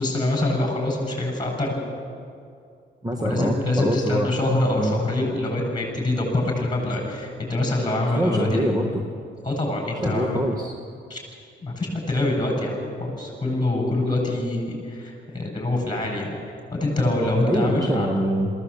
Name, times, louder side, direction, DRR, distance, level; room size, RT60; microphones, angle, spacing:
voice 1, 0.0-1.8 3.2-8.6 9.4-10.4 11.1-11.2 11.6-16.3 16.7-18.1, left 2 dB, 20° left, 1 dB, 8.0 m, -25 dB
voice 2, 3.0-4.3 4.8-5.0 8.2-8.9 10.0-10.8 17.4-18.5, equal, 20° right, 3 dB, 1.6 m, -24 dB
22.0 x 16.0 x 8.6 m, 2.3 s
cardioid pair, 90°, 20 cm